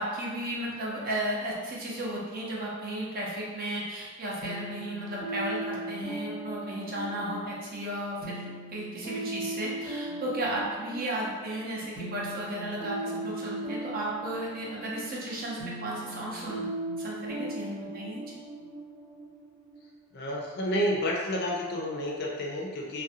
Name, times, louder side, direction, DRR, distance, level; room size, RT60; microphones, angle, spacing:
voice 1, 0.0-16.7 17.0-18.4, right 1 dB, 40° right, -4 dB, 0.5 m, -34 dB
sound 1, 4.4-20.0, right 2 dB, 85° right, 1.2 m, -38 dB
voice 2, 20.1-23.0, equal, 45° left, -2 dB, 0.4 m, -30 dB
2.4 x 2.1 x 2.7 m, 1.4 s
head